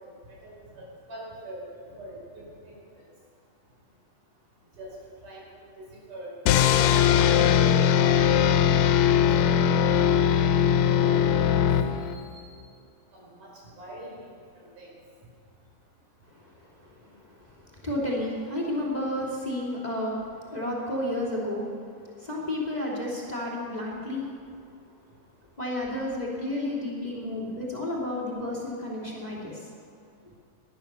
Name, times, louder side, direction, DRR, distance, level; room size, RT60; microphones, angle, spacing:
voice 1, 0.4-1.6 2.0-2.7 4.8-4.9 5.2-5.4 5.8-6.3 6.8-8.1 8.4-8.5 9.4-10.1 10.3-11.2 11.4-11.6 12.3-12.4 13.1-13.5 13.8-14.2 14.8-14.9, right 1 dB, 70° right, -4 dB, 6.6 m, -43 dB
sound 1, 6.5-12.3, left 9 dB, 85° left, 2.3 m, -20 dB
voice 2, 17.8-20.2 20.5-21.7 22.2-24.2 25.6-29.5, left 1 dB, 15° left, -4 dB, 2.7 m, -31 dB
17.5 x 12.0 x 6.9 m, 2.5 s
omnidirectional pair, 3.8 m